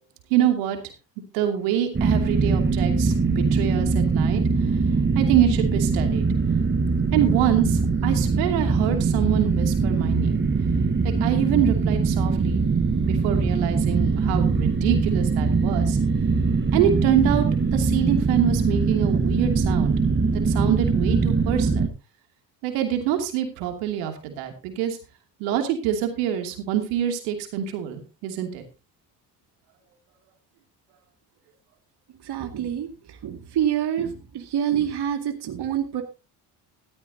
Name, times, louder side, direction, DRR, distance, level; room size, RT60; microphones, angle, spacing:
voice 1, 0.3-0.8 1.3-4.4 5.1-6.3 7.1-10.4 11.0-12.6 13.1-16.0 16.7-17.5 17.7-19.9 20.3-21.9 22.6-25.0 25.4-28.6, right 10 dB, 85° right, 5 dB, 2.8 m, -25 dB
sound 1, 1.9-21.9, right 4 dB, 25° right, 1.3 m, -22 dB
voice 2, 32.3-32.9 33.2-36.0, right 9 dB, 55° right, 5 dB, 2.3 m, -26 dB
14.5 x 13.0 x 2.8 m, 0.29 s
supercardioid pair, 70°, 48 cm